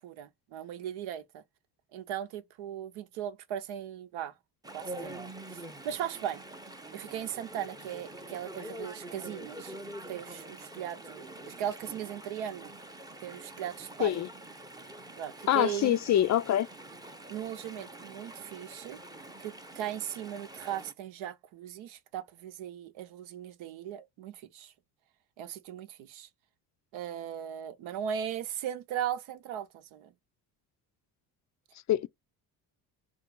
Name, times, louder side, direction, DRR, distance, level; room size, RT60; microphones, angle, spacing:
voice 1, 0.0-1.4 1.9-4.3 4.7-6.4 6.9-9.7 10.1-12.7 13.2-14.2 15.2-16.0 17.3-19.0 19.4-24.7 25.4-26.3 26.9-30.1, right 10 dB, 70° right, 0.8 m, -38 dB
Chatter / Stream, 4.6-20.9, right 1 dB, 10° right, 0.6 m, -46 dB
voice 2, 15.5-16.7 31.9-32.1, left 12 dB, 40° left, 0.4 m, -25 dB
3.5 x 2.6 x 3.7 m
supercardioid pair, 65°, 49 cm